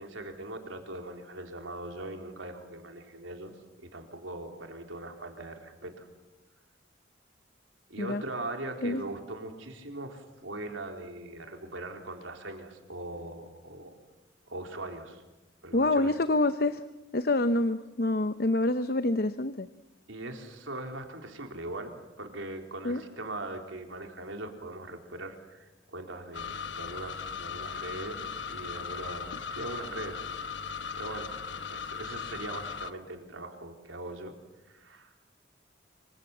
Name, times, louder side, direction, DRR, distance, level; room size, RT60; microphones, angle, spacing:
voice 1, 0.0-3.5 3.9-6.1 7.9-13.9 14.5-15.2 15.6-16.1 20.1-30.2 30.9-34.3 34.7-35.1, right 2 dB, 85° right, 4 dB, 3.9 m, -40 dB
voice 2, 15.7-16.8 17.1-19.7 22.8-23.0, left 2 dB, 50° left, 11 dB, 0.8 m, -26 dB
sound 1, 26.3-32.9, left 6 dB, 70° left, 1.1 m, -38 dB
26.5 x 25.0 x 7.4 m, 1.1 s
head